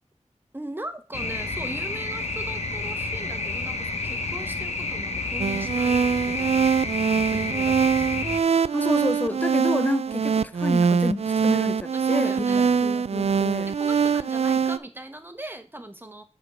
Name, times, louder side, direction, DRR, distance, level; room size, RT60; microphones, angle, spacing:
voice 1, 0.5-6.7 7.1-8.3 11.9-12.7 13.1-16.2, right 1 dB, 15° right, 1.0 m, -39 dB
sound 1, 1.1-8.4, left 3 dB, 60° left, 1.1 m, -30 dB
sound 2, 5.4-14.8, right 6 dB, 55° right, 0.4 m, -23 dB
voice 2, 8.7-13.7, left 2 dB, 15° left, 0.4 m, -29 dB
7.8 x 4.5 x 5.0 m
wide cardioid pair, 85°, 13 cm